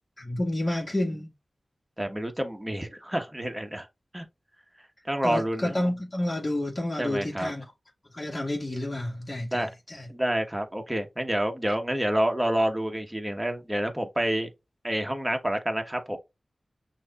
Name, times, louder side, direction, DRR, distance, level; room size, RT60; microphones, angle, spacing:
voice 1, 0.2-1.3 5.2-7.7 8.1-10.1, left 1 dB, 35° left, 1.8 m, -30 dB
voice 2, 2.0-3.9 4.1-4.2 5.1-5.7 7.0-7.5 9.5-9.7 10.1-14.5 14.8-16.2, right 1 dB, 10° right, 1.2 m, -28 dB
6.2 x 2.8 x 2.4 m
wide cardioid pair, 70°, 0 cm